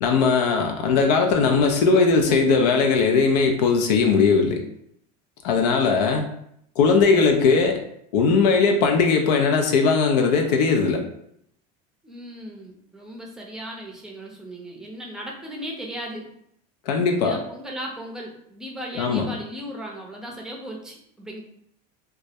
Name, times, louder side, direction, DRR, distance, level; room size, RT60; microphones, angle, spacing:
voice 1, 0.0-4.6 5.4-6.3 6.8-7.8 8.1-11.0 16.9-17.4 19.0-19.3, left 4 dB, 90° left, 4 dB, 0.4 m, -19 dB
voice 2, 12.0-16.3 17.2-21.4, equal, 5° right, -1 dB, 0.5 m, -36 dB
2.3 x 2.0 x 2.7 m, 0.72 s
supercardioid pair, 125°, 20 cm